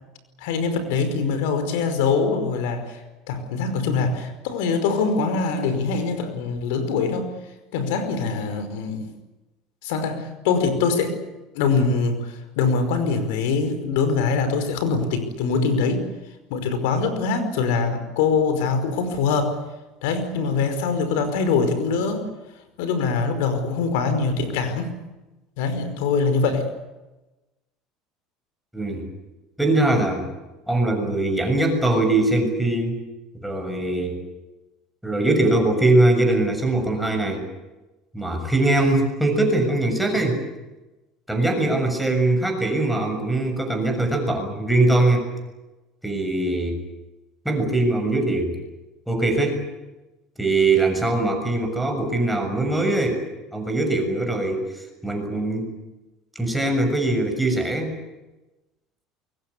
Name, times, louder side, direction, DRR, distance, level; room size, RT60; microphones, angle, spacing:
voice 1, 0.4-3.0 3.3-7.3 7.7-9.1 9.8-11.1 11.5-12.3 12.6-16.0 16.5-19.6 20.0-22.2 22.8-24.9 25.6-26.7, left 4 dB, 85° left, 9 dB, 5.2 m, -23 dB
voice 2, 28.7-29.1 29.6-30.3 30.7-33.0 33.4-34.2 35.0-37.4 38.1-40.4 41.3-45.3 46.0-46.8 47.5-48.6 49.1-49.6 50.4-53.2 53.5-55.7 56.4-57.9, right 2 dB, ahead, 3 dB, 7.0 m, -21 dB
25.0 x 22.5 x 8.4 m, 1.0 s
cardioid pair, 140°, 0 cm